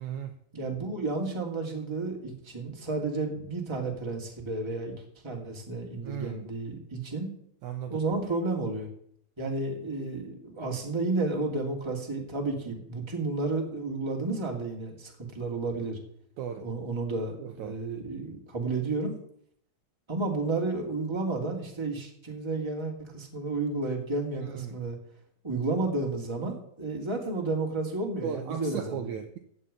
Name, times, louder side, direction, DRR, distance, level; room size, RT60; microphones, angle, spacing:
voice 1, 0.0-0.4 6.0-6.5 7.6-8.0 16.4-16.7 17.4-17.8 24.4-24.7 28.2-29.4, right 9 dB, 70° right, 7 dB, 1.9 m, -36 dB
voice 2, 0.5-5.0 5.2-7.3 7.9-8.9 9.4-16.0 16.6-19.2 20.1-25.0 25.4-29.1, right 3 dB, 10° right, 1 dB, 1.9 m, -32 dB
15.0 x 5.5 x 8.7 m, 0.67 s
omnidirectional pair, 4.1 m